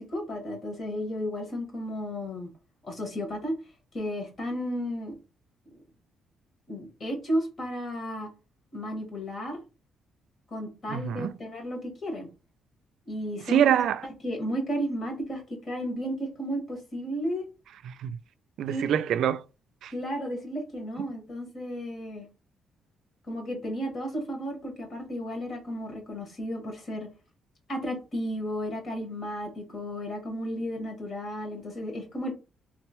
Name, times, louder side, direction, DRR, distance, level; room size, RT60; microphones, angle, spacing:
voice 1, 0.0-2.5 2.8-3.5 3.9-5.1 6.7-8.3 8.7-9.6 10.5-12.3 13.1-13.6 14.2-15.4 15.7-17.5 18.7-19.0 19.9-22.3 23.3-27.1 27.7-32.3, equal, 50° left, 1.9 m, -33 dB
voice 2, 10.9-11.3 13.5-14.0 17.8-18.2 18.6-19.4 19.8-19.9, right 9 dB, 75° right, 0.3 m, -25 dB
3.7 x 3.0 x 3.0 m
cardioid pair, 90°, 0 cm